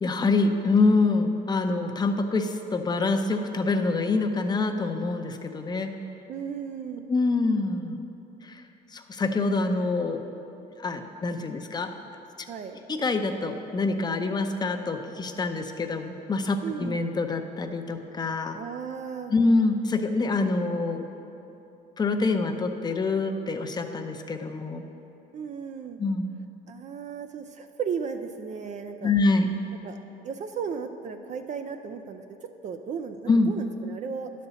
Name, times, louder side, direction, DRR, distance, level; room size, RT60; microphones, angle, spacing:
voice 1, 0.0-5.9 7.1-8.0 8.4-8.6 8.9-10.2 10.8-11.9 12.9-18.6 19.3-21.1 22.0-24.8 26.0-26.3 29.0-29.5 33.3-33.5, left 3 dB, 25° left, 6 dB, 0.6 m, -25 dB
voice 2, 6.3-7.0 12.5-12.8 16.6-17.0 18.5-19.3 25.3-26.0 26.7-29.1 29.8-30.0 30.2-32.2 32.6-34.3, right 6 dB, 45° right, 7 dB, 0.4 m, -35 dB
10.5 x 4.2 x 6.8 m, 2.9 s
cardioid pair, 110°, 17 cm